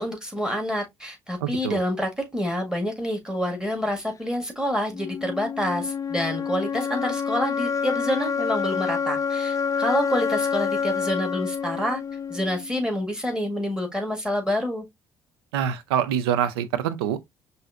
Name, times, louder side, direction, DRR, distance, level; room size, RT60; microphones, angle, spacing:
voice 1, 0.0-12.0 12.3-14.8, equal, 5° right, 1.7 m, -27 dB
voice 2, 1.4-1.8 15.5-17.2, right 9 dB, 75° right, 0.5 m, -25 dB
sound 1, 4.9-12.9, left 6 dB, 25° left, 0.5 m, -28 dB
5.6 x 2.7 x 2.4 m
figure-of-eight pair, 50°, 13 cm